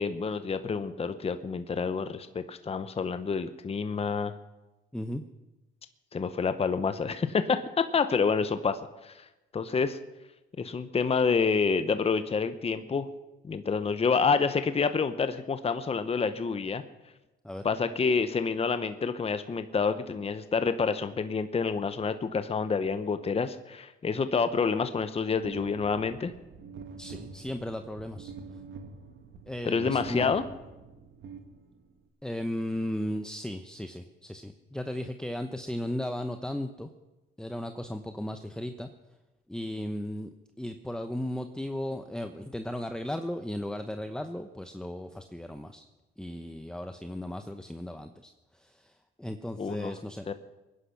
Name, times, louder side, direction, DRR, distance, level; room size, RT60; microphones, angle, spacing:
voice 1, 0.0-4.3 6.1-9.3 9.5-10.0 10.6-13.1 13.4-16.8 17.6-26.3 29.6-30.4 49.6-49.9 50.3-50.4, left 5 dB, 30° left, 10 dB, 0.9 m, -28 dB
sound 1, 25.4-32.0, right 5 dB, 70° right, 2.0 m, -45 dB
voice 2, 27.0-28.3 29.5-30.3 32.2-36.9 37.4-38.9 39.5-40.3 40.6-45.9 46.2-50.3, left 1 dB, 5° left, 7 dB, 0.8 m, -36 dB
22.5 x 10.5 x 5.9 m, 1.0 s
cardioid pair, 90°, 20 cm